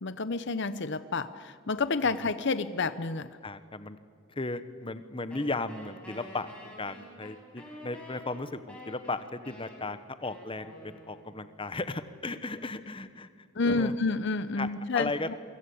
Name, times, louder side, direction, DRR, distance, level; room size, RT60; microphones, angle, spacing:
voice 1, 0.0-3.4 13.5-15.3, left 3 dB, 50° left, 13 dB, 0.7 m, -29 dB
voice 2, 3.4-4.0 4.3-6.5 6.8-13.9 14.6-14.7 14.9-15.3, left 2 dB, 25° left, 12 dB, 1.0 m, -36 dB
Wind instrument woodwind instrument, 5.3-11.6, left 1 dB, 5° left, 7.1 m, -48 dB
28.5 x 24.5 x 8.5 m, 2.1 s
head